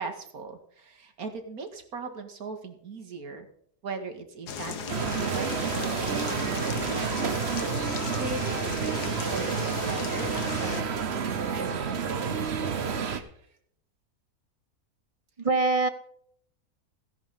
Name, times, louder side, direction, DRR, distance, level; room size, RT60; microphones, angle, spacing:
voice 1, 0.0-3.5 3.8-7.2 7.7-13.3, right 4 dB, 65° right, 6 dB, 2.3 m, -39 dB
sound 1, 4.5-10.8, left 6 dB, 90° left, 1.8 m, -36 dB
sound 2, 4.9-13.2, right 6 dB, 45° right, 1.2 m, -30 dB
voice 2, 15.4-15.9, right 3 dB, 30° right, 10 dB, 0.7 m, -23 dB
16.0 x 10.5 x 3.8 m, 0.66 s
omnidirectional pair, 1.7 m